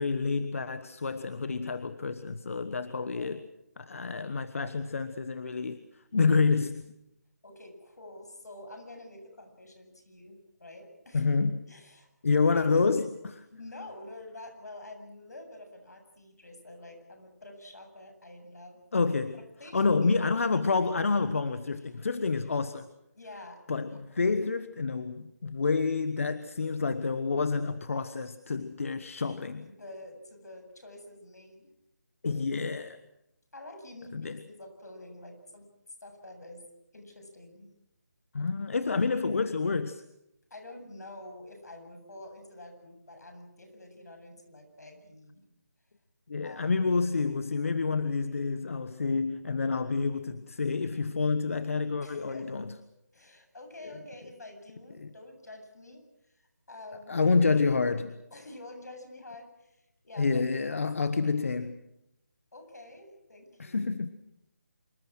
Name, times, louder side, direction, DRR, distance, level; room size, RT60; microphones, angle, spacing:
voice 1, 0.0-3.4 3.8-6.8 11.1-11.6 12.2-13.1 18.9-19.4 19.7-22.9 23.7-29.7 32.2-33.0 34.1-34.4 38.3-40.0 46.3-52.7 55.0-55.1 57.1-58.2 60.2-61.8 63.6-64.1, left 4 dB, 55° left, 12 dB, 1.3 m, -28 dB
voice 2, 7.4-11.3 11.7-12.1 12.5-12.9 13.5-18.8 19.3-20.2 23.1-23.6 29.6-31.7 33.5-35.6 36.0-36.6 36.9-37.7 40.5-45.4 46.4-47.1 52.0-52.6 53.1-57.2 58.3-60.4 60.7-60.9 62.5-63.9, left 2 dB, 75° left, 5 dB, 7.9 m, -48 dB
26.0 x 23.5 x 6.3 m, 0.84 s
figure-of-eight pair, 165°, 9 cm